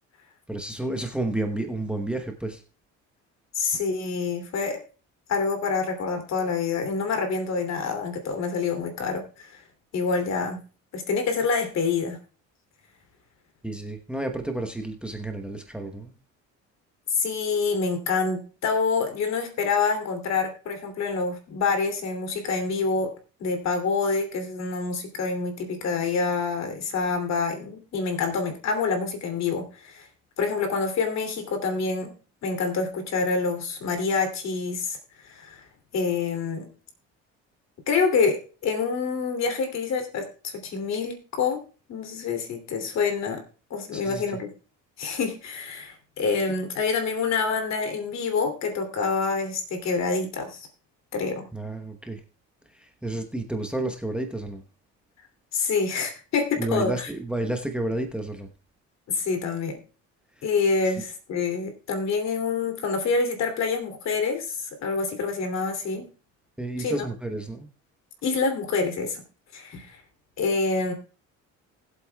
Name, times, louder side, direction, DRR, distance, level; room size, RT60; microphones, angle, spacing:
voice 1, 0.5-2.6 13.6-16.1 43.9-44.4 51.5-52.2 52.7-54.6 56.6-58.5 60.4-60.5 60.8-61.0 66.6-67.7, right 2 dB, 5° right, 6 dB, 1.0 m, -31 dB
voice 2, 3.5-4.8 5.3-9.6 9.9-10.6 10.9-12.2 17.1-23.1 23.4-30.1 30.4-32.1 32.4-35.7 35.9-36.7 37.9-41.6 41.9-43.4 43.7-44.5 45.0-50.7 51.1-51.5 55.5-57.1 59.1-59.8 60.4-66.1 66.8-67.1 68.2-69.2 69.5-70.0 70.4-70.9, left 4 dB, 60° left, 5 dB, 2.9 m, -27 dB
19.5 x 8.0 x 2.3 m, 0.37 s
cardioid pair, 115°, 31 cm